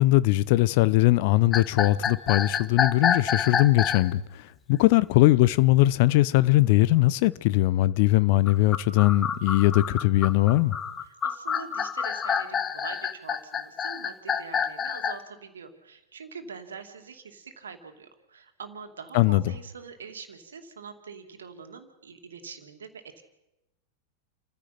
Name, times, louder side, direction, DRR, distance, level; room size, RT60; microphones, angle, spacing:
voice 1, 0.0-4.2 4.7-10.7 19.1-19.5, left 17 dB, 50° left, 0.8 m, -20 dB
sound 1, 1.5-4.1 8.5-15.2, left 7 dB, 25° left, 1.2 m, -28 dB
voice 2, 11.2-23.2, right 5 dB, 70° right, 2.6 m, -44 dB
29.0 x 15.0 x 5.9 m
figure-of-eight pair, 90°, 0 cm